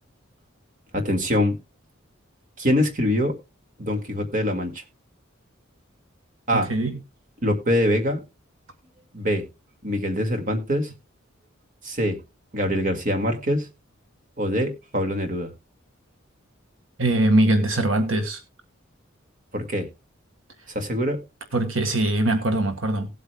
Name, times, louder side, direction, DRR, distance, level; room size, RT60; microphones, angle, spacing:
voice 1, 0.9-1.6 2.6-3.3 3.8-4.8 6.5-6.7 7.4-8.2 9.1-9.4 9.8-10.9 11.8-12.2 12.5-13.7 14.4-15.5 19.5-19.9 20.8-21.2, equal, 45° right, 2.0 m, -24 dB
voice 2, 17.0-18.4 21.5-23.1, right 1 dB, 75° right, 1.6 m, -21 dB
18.5 x 8.1 x 2.2 m
head